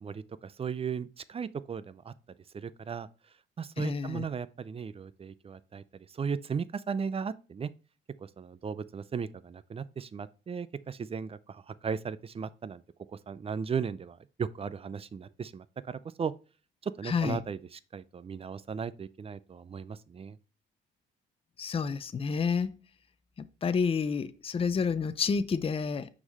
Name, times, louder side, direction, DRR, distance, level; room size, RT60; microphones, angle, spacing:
voice 1, 0.0-2.1 2.5-3.1 3.6-7.7 8.2-12.8 13.1-16.3 16.8-20.4, right 6 dB, 30° right, 0.4 m, -36 dB
voice 2, 3.8-4.2 17.1-17.4 21.6-22.8 23.4-26.1, left 5 dB, 30° left, 0.5 m, -29 dB
5.9 x 4.0 x 5.3 m
cardioid pair, 90°, 20 cm